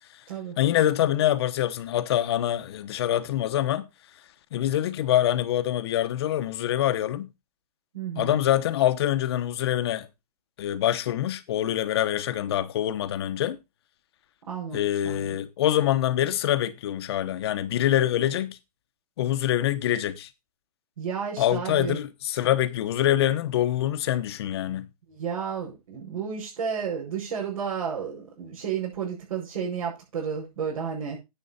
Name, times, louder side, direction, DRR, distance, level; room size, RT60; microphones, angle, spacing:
voice 1, 0.6-3.8 4.5-7.3 8.2-10.1 10.6-13.6 14.7-18.6 19.2-20.3 21.4-24.9, left 12 dB, 40° left, 1.1 m, -25 dB
voice 2, 7.9-8.4 14.5-15.4 21.0-22.0 25.1-31.2, right 7 dB, 70° right, 6.1 m, -32 dB
10.5 x 8.4 x 4.2 m
hypercardioid pair, 160°, 19 cm